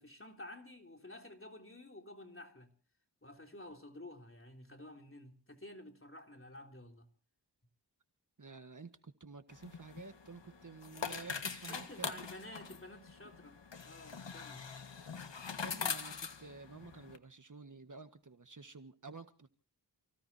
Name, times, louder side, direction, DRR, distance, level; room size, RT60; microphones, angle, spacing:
voice 1, 0.0-2.7 3.2-7.1 11.7-14.6, left 1 dB, 30° left, 3.3 m, -51 dB
voice 2, 8.4-12.1 15.3-19.5, right 4 dB, 45° right, 1.5 m, -51 dB
sound 1, 9.5-17.2, left 6 dB, 90° left, 1.6 m, -43 dB
29.5 x 17.0 x 2.8 m
wide cardioid pair, 55°, 42 cm